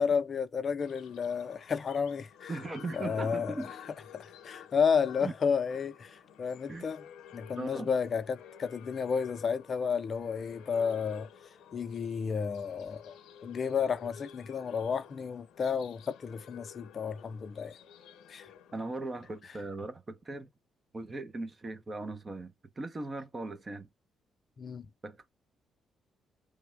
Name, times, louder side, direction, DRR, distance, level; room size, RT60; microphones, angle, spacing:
voice 1, 0.0-2.6 2.9-3.7 4.1-7.0 7.3-11.3 11.7-17.7 18.3-18.5 24.6-24.9, left 6 dB, 45° left, 0.5 m, -32 dB
sound 1, 0.8-19.4, left 9 dB, 85° left, 0.8 m, -52 dB
voice 2, 2.5-3.7 5.2-5.3 6.7-6.9 7.6-7.9 18.7-20.5 20.9-23.9 25.0-25.3, right 2 dB, 30° right, 0.7 m, -39 dB
3.3 x 2.2 x 3.3 m
cardioid pair, 90°, 0 cm